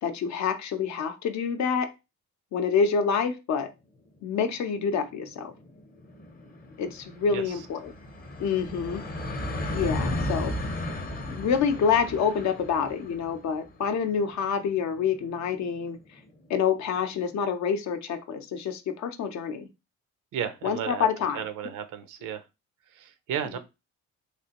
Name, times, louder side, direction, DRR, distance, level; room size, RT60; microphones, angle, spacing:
voice 1, 0.0-1.9 2.5-3.7 4.2-5.5 6.8-7.9 8.4-9.0 9.7-10.6 11.3-16.2 16.5-19.7 20.6-21.4, left 6 dB, 65° left, 8 dB, 0.6 m, -27 dB
sound 1, 4.2-4.3 4.6-4.7 4.9-16.4, left 1 dB, 30° left, 0.7 m, -36 dB
voice 2, 20.3-21.1 21.3-22.4 22.9-23.6, right 8 dB, 85° right, 10 dB, 0.6 m, -33 dB
3.2 x 2.5 x 2.8 m, 0.26 s
cardioid pair, 90°, 30 cm